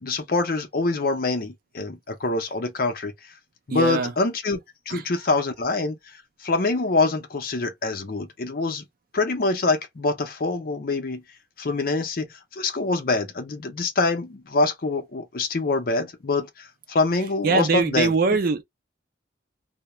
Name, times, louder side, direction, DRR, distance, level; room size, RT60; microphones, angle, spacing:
voice 1, 0.0-3.1 3.7-4.6 4.9-6.0 6.4-8.8 9.1-11.2 11.6-12.3 12.6-16.5 16.9-18.1, left 3 dB, 50° left, 0.6 m, -25 dB
voice 2, 3.7-4.1 4.9-5.0 17.4-18.6, right 4 dB, 50° right, 0.4 m, -22 dB
2.3 x 2.1 x 2.9 m
head